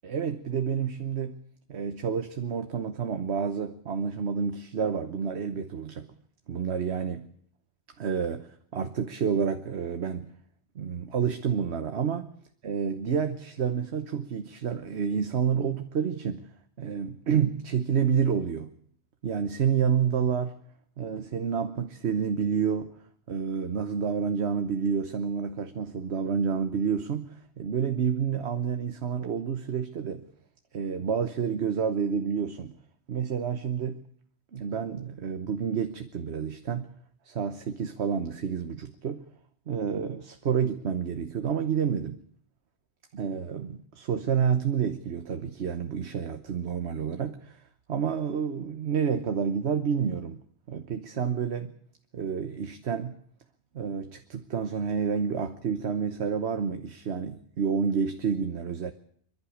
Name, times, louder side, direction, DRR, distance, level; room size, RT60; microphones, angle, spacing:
voice 1, 0.0-1.4 1.7-6.1 6.5-7.3 8.0-10.3 10.7-12.3 12.6-16.5 16.8-18.7 19.2-20.6 21.0-22.9 23.3-30.3 30.7-32.7 33.1-34.0 34.5-36.9 37.2-39.2 39.7-42.2 43.1-47.6 47.9-51.7 52.1-53.2 53.7-58.9, right 7 dB, 80° right, 1.3 m, -29 dB
28.0 x 11.5 x 8.5 m
omnidirectional pair, 1.1 m